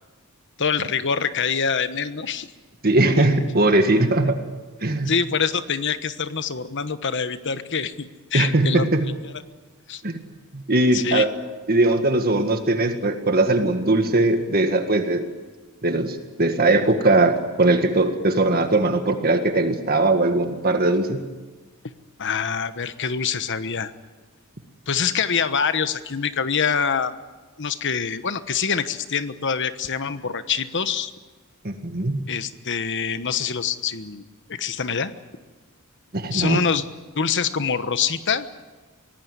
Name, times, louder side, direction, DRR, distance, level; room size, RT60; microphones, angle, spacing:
voice 1, 0.6-2.5 5.0-8.8 9.9-10.0 10.9-11.3 22.2-23.9 24.9-27.2 27.6-31.1 32.3-34.2 34.5-35.1 36.3-36.9 37.2-38.5, left 6 dB, 55° left, 11 dB, 1.2 m, -25 dB
voice 2, 2.8-4.4 4.8-5.1 8.3-9.1 10.0-10.2 10.5-11.3 11.7-15.3 15.8-21.2 31.6-32.2 36.1-36.6, right 2 dB, 45° right, 6 dB, 1.8 m, -20 dB
24.0 x 18.0 x 9.9 m, 1.3 s
head